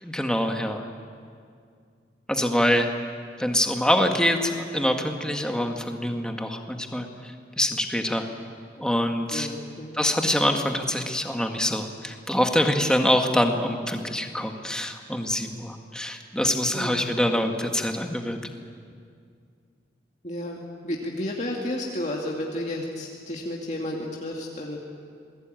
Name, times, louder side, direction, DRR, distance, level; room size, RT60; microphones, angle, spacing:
voice 1, 0.0-0.9 2.3-2.9 3.4-8.3 8.8-9.5 9.9-18.5, left 1 dB, 5° left, 3 dB, 1.7 m, -25 dB
voice 2, 9.3-10.0 16.7-17.1 20.2-24.8, left 1 dB, 40° left, -1 dB, 2.3 m, -32 dB
27.5 x 20.5 x 9.1 m, 2.2 s
head